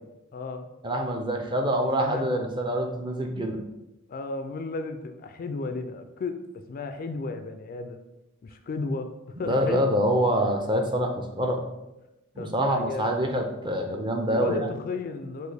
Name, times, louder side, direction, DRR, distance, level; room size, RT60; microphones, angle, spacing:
voice 1, 0.3-0.7 1.8-2.3 4.1-8.0 8.4-9.9 12.4-13.2 14.3-15.5, left 3 dB, 40° left, 8 dB, 0.3 m, -34 dB
voice 2, 0.8-3.6 9.5-11.6 12.4-14.6, equal, 20° right, 3 dB, 0.5 m, -25 dB
6.1 x 2.5 x 3.3 m, 0.96 s
head